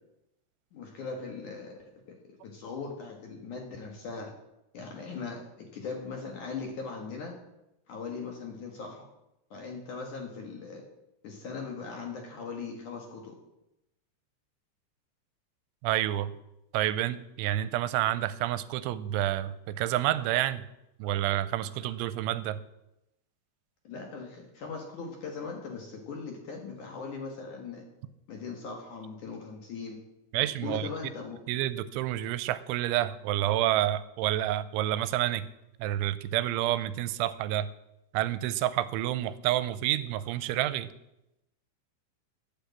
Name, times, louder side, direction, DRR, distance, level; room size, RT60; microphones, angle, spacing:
voice 1, 0.7-4.3 4.7-7.3 7.9-9.0 9.5-10.8 11.2-13.4 23.8-27.8 28.3-30.0 30.6-31.4, left 4 dB, 55° left, 2 dB, 2.6 m, -39 dB
voice 2, 15.8-16.3 16.7-20.7 21.0-22.6 30.3-30.9 31.5-35.5 35.8-37.7 38.1-40.9, right 13 dB, 85° right, 15 dB, 3.0 m, -29 dB
12.0 x 9.6 x 8.5 m, 0.89 s
omnidirectional pair, 5.4 m